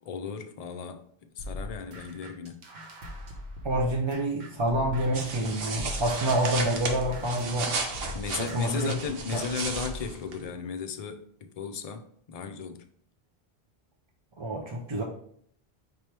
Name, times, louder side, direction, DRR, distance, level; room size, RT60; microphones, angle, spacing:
voice 1, 0.0-1.0 1.4-2.6 8.1-12.8, left 6 dB, 50° left, 7 dB, 0.4 m, -35 dB
sound 1, 1.4-5.4 5.7-10.1, left 1 dB, 90° right, 1.2 m, -41 dB
voice 2, 3.6-7.8 8.4-8.9 9.3-9.4 14.4-15.0, right 1 dB, 40° right, -1 dB, 0.4 m, -28 dB
sound 2, 5.1-10.5, right 4 dB, 65° right, 0.9 m, -35 dB
5.2 x 3.0 x 3.3 m, 0.64 s
omnidirectional pair, 1.1 m